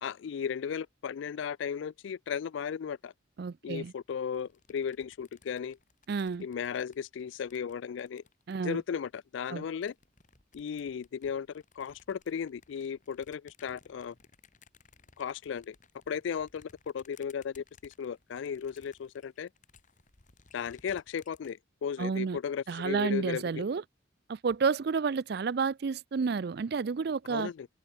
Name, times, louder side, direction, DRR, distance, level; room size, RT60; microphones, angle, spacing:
voice 1, 0.0-3.1 3.6-5.8 6.4-8.2 8.6-9.9 10.5-11.5 11.8-14.1 15.2-15.8 16.1-19.5 20.5-23.7 27.3-27.7, left 7 dB, 75° left, 0.3 m, -35 dB
voice 2, 3.4-3.9 6.1-6.5 8.5-8.8 9.5-9.6 22.0-22.4 22.7-23.8 24.3-27.5, right 5 dB, 55° right, 0.4 m, -30 dB
sound 1, 4.3-9.1 9.7-21.5, left 5 dB, 40° left, 2.4 m, -62 dB
open air
head